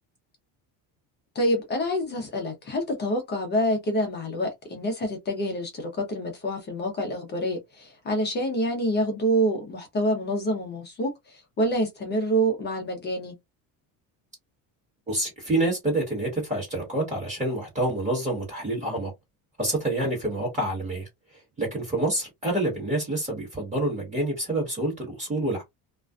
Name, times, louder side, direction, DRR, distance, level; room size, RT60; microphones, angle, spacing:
voice 1, 1.3-13.3, equal, 25° left, 0.5 m, -27 dB
voice 2, 15.1-19.1 19.6-21.1 21.6-25.6, right 1 dB, 15° right, 1.3 m, -27 dB
2.4 x 2.2 x 2.3 m
cardioid pair, 175°, 41 cm